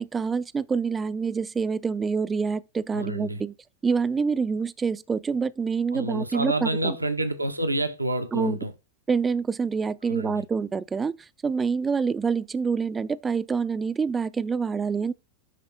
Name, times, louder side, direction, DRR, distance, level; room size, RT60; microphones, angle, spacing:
voice 1, 0.0-3.5 3.8-7.0 8.3-8.6 9.1-15.1, right 5 dB, 15° right, 0.3 m, -26 dB
voice 2, 2.9-3.4 5.9-8.7 10.0-10.4, right 1 dB, 85° right, 0.7 m, -28 dB
10.0 x 3.6 x 3.6 m
figure-of-eight pair, 90°, 0 cm